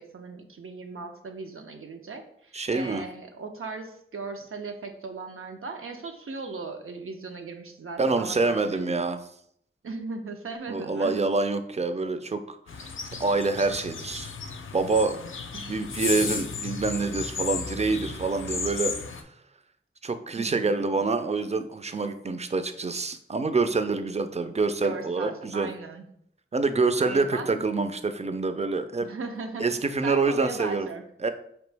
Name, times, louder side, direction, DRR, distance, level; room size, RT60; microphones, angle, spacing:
voice 1, 0.0-9.1 9.8-11.2 15.5-15.7 20.4-20.8 24.8-26.0 27.0-27.6 29.0-29.7 30.0-31.0, right 4 dB, 85° right, 4 dB, 0.6 m, -38 dB
voice 2, 2.5-3.0 8.0-9.2 10.7-12.6 12.8-12.9 13.2-14.3 14.7-15.2 15.7-18.9 20.0-25.7 26.5-29.1 29.6-30.9 31.2-31.3, right 3 dB, 30° right, 9 dB, 0.4 m, -26 dB
sound 1, 12.7-19.2, left 5 dB, 70° left, 0.4 m, -34 dB
4.4 x 3.0 x 3.3 m, 0.70 s
wide cardioid pair, 50°, 21 cm